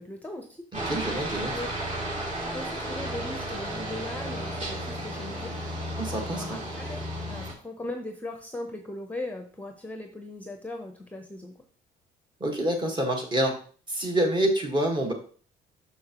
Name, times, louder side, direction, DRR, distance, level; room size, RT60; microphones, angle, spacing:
voice 1, 0.0-0.6 1.3-1.7 2.0-5.5 6.3-11.6, left 2 dB, 10° left, 4 dB, 0.8 m, -39 dB
voice 2, 0.7-1.5 6.0-6.6 12.4-13.5 13.9-15.1, right 1 dB, 25° right, 2 dB, 1.7 m, -27 dB
Aircraft, 0.7-7.5, right 1 dB, 40° right, 2.9 m, -33 dB
6.5 x 6.1 x 3.0 m, 0.43 s
cardioid pair, 110°, 17 cm